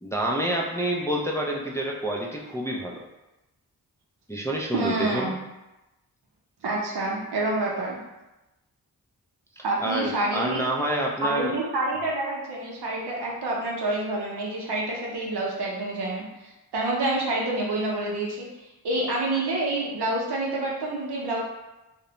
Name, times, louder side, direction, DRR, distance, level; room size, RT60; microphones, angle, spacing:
voice 1, 0.0-3.0 4.3-5.3 9.6-11.6, right 1 dB, 10° left, -2 dB, 0.3 m, -28 dB
voice 2, 4.7-5.3 6.6-8.0 9.6-10.6 11.2-18.5 18.8-21.4, right 2 dB, 80° right, -3 dB, 0.7 m, -28 dB
2.5 x 2.0 x 2.9 m, 0.99 s
cardioid pair, 55°, 39 cm